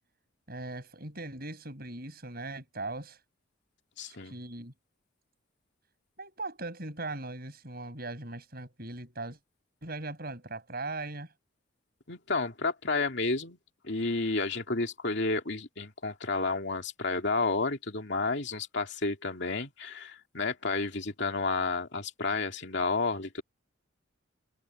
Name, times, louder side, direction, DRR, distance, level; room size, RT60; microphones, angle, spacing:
voice 1, 0.5-3.2 4.1-4.7 6.2-9.4 9.8-11.3, right 2 dB, 45° right, 7.3 m, -39 dB
voice 2, 4.0-4.3 12.1-13.6 13.8-23.4, left 3 dB, 55° left, 2.7 m, -31 dB
head